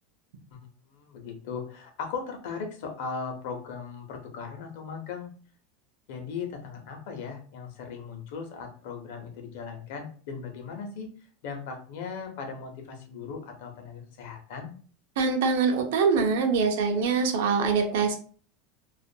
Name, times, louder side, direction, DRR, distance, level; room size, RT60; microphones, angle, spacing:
voice 1, 0.9-5.3 6.1-11.1 11.4-14.7, left 5 dB, 65° left, 4 dB, 0.7 m, -38 dB
voice 2, 15.2-18.2, right 5 dB, 75° right, 4 dB, 0.5 m, -24 dB
2.4 x 2.2 x 2.7 m, 0.43 s
supercardioid pair, 155°, 0 cm